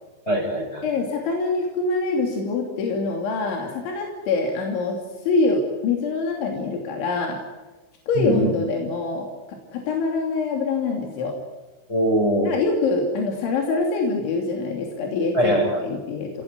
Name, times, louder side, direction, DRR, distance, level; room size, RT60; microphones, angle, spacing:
voice 1, 0.3-0.9 8.1-8.5 11.9-12.5 15.3-15.7, equal, 15° left, -1 dB, 6.7 m, -22 dB
voice 2, 0.8-7.4 8.1-9.3 9.7-11.4 12.5-16.4, left 3 dB, 85° left, 1 dB, 5.3 m, -24 dB
29.5 x 18.0 x 9.7 m, 1.2 s
omnidirectional pair, 5.3 m